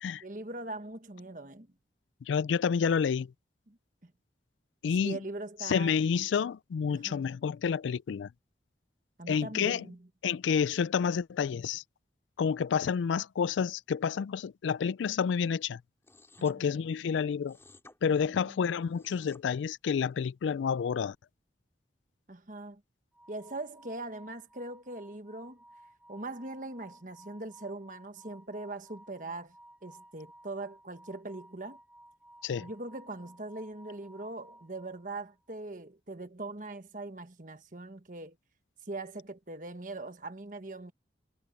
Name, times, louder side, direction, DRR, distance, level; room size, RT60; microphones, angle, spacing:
voice 1, 0.2-1.7 3.7-3.8 4.0-4.1 5.0-5.9 6.9-7.2 9.2-10.0 18.4-18.5 22.3-22.8 23.3-25.6 26.1-29.5 29.8-31.8 32.6-38.4 38.9-40.9, right 2 dB, 45° right, 1.4 m, -41 dB
voice 2, 2.2-3.3 4.8-5.2 5.6-8.3 9.3-9.9 10.2-11.8 12.4-15.8 16.4-17.6 18.0-21.2 32.4-32.7, left 6 dB, 85° left, 0.3 m, -29 dB
sound 1, 16.0-16.6 17.5-18.0 18.8-19.4, left 2 dB, 15° left, 5.5 m, -55 dB
sound 2, 23.1-35.4, right 1 dB, 5° right, 3.5 m, -57 dB
head